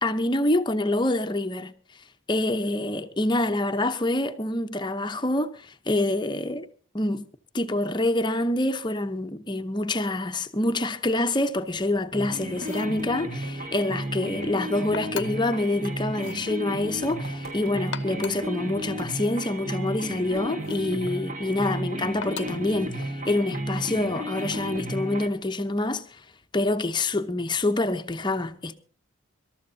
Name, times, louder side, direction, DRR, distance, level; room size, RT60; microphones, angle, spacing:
voice 1, 0.0-1.7 2.3-6.7 6.9-7.2 7.5-26.2 26.5-28.7, left 2 dB, 20° left, 0.8 m, -26 dB
sound 1, 11.6-18.5 18.8-19.9 20.2-21.2 21.4-23.3 23.6-25.0, right 2 dB, 85° right, 5.6 m, -46 dB
sound 2, 12.1-25.3, right 1 dB, 35° right, 1.4 m, -33 dB
sound 3, 12.6-13.0 14.9-15.5 16.1-16.5 17.8-18.5 20.6-20.9 22.2-22.7 24.3-24.7, left 6 dB, 65° left, 0.7 m, -39 dB
25.5 x 13.0 x 2.7 m
head